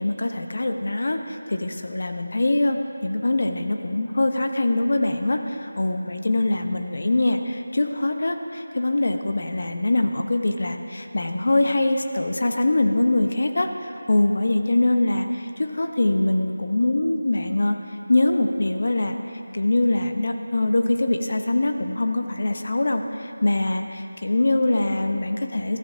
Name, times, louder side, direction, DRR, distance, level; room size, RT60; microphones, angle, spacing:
voice 1, 0.0-17.8 18.1-19.2 19.5-25.8, left 2 dB, 50° left, 6 dB, 0.9 m, -23 dB
22.0 x 14.0 x 2.9 m, 2.8 s
figure-of-eight pair, 165°, 0 cm